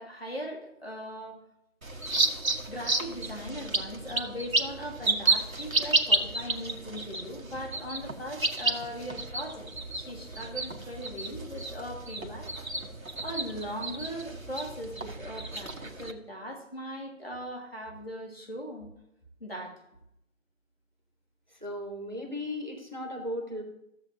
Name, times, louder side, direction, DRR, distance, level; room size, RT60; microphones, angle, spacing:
voice 1, 0.0-1.4 2.7-9.7 9.9-12.5 13.2-18.9 19.4-19.8, equal, 45° left, 0 dB, 2.0 m, -39 dB
sound 1, 1.8-16.1, right 2 dB, 85° right, 1.2 m, -31 dB
voice 2, 21.6-23.6, left 1 dB, 35° right, 2 dB, 1.3 m, -36 dB
13.5 x 7.6 x 2.8 m, 0.81 s
figure-of-eight pair, 175°, 40 cm